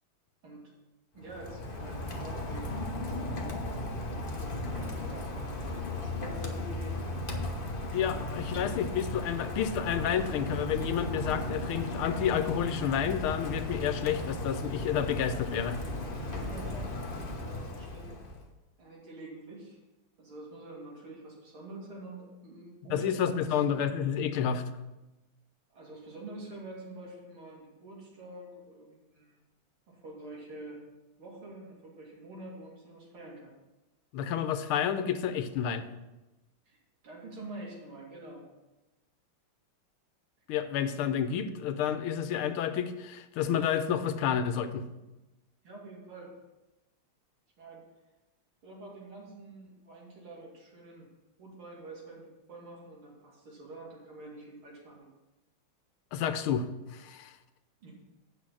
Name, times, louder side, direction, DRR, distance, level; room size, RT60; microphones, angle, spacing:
voice 1, 1.1-2.8 4.0-5.3 6.0-7.0 16.2-18.2 18.8-19.8 20.2-23.7 25.7-29.4 29.9-30.8 31.2-33.5 36.7-36.8 37.0-38.4 45.6-46.3 47.6-47.8 48.6-51.1 51.4-55.1 57.8-57.9, right 2 dB, 80° right, -3 dB, 3.3 m, -46 dB
Rain, 1.2-18.5, left 2 dB, 35° left, 0.9 m, -36 dB
voice 2, 7.9-15.8 22.9-24.6 34.1-35.9 40.5-44.8 56.1-56.7 56.9-57.3, left 8 dB, 85° left, 10 dB, 1.6 m, -30 dB
8.4 x 5.9 x 6.2 m, 1.0 s
omnidirectional pair, 2.3 m